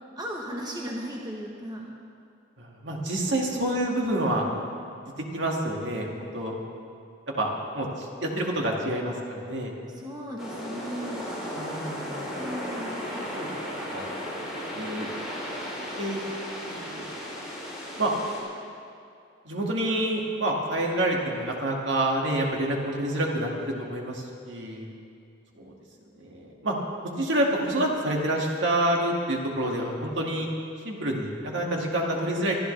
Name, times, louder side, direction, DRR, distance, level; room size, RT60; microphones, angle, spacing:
voice 1, 0.2-1.9 3.3-3.7 9.9-11.3 12.4-13.1, equal, 20° right, -2 dB, 1.3 m, -36 dB
voice 2, 2.6-4.4 5.2-6.5 7.4-7.5 7.7-9.7 11.5-12.2 13.4-13.5 13.9-14.0 14.7-15.1 16.0-16.2 16.7-17.1 18.0-18.1 19.4-24.9 25.5-25.7 26.1-26.8 27.2-30.5 30.8-32.6, right 1 dB, 65° right, -1 dB, 2.2 m, -28 dB
sound 1, 10.4-18.4, equal, 5° right, 4.6 m, -35 dB
24.0 x 13.0 x 3.4 m, 2.4 s
head